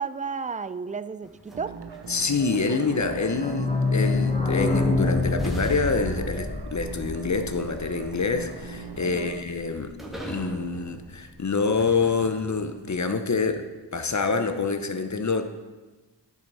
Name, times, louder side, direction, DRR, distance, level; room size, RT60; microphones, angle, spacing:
voice 1, 0.0-1.8 9.0-9.4, right 5 dB, 20° right, 13 dB, 0.3 m, -33 dB
sound 1, 1.2-3.6 4.8-4.9 5.4-12.9, equal, ahead, 1.7 m, -43 dB
sound 2, 1.5-9.4, right 4 dB, 70° right, 0.8 m, -39 dB
voice 2, 2.1-10.0 10.2-13.7 13.9-15.4, left 4 dB, 40° left, 8 dB, 0.9 m, -26 dB
sound 3, 3.0-8.6 8.9-9.0 9.2-9.3 9.5-9.6, left 3 dB, 15° left, 1.0 m, -26 dB
10.0 x 6.4 x 4.2 m, 1.2 s
cardioid pair, 50°, 43 cm